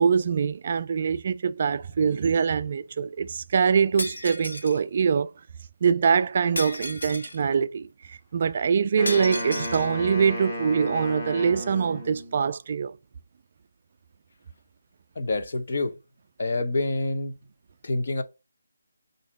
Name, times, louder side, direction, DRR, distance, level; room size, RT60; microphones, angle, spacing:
voice 1, 0.0-5.3 5.8-13.0, right 6 dB, 35° right, 0.3 m, -24 dB
Shatter, 4.0-4.8 6.6-7.4 9.1-9.9, left 2 dB, 85° left, 1.5 m, -34 dB
Wind instrument woodwind instrument, 9.0-12.4, equal, 25° left, 1.8 m, -33 dB
voice 2, 15.1-15.9 16.4-17.3 17.8-18.2, left 2 dB, 50° left, 1.1 m, -27 dB
6.9 x 2.8 x 5.1 m
figure-of-eight pair, 170°, 0 cm